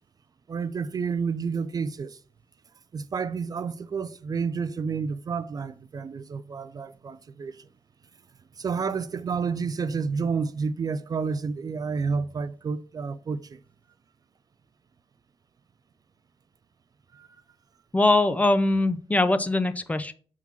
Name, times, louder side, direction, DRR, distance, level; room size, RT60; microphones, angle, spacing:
voice 1, 0.5-2.2 2.9-7.7 8.5-13.6 17.1-17.3, right 5 dB, 40° right, 0.4 m, -30 dB
voice 2, 17.9-20.1, left 2 dB, 15° left, 0.5 m, -22 dB
5.8 x 3.7 x 5.7 m
cardioid pair, 90°, 10 cm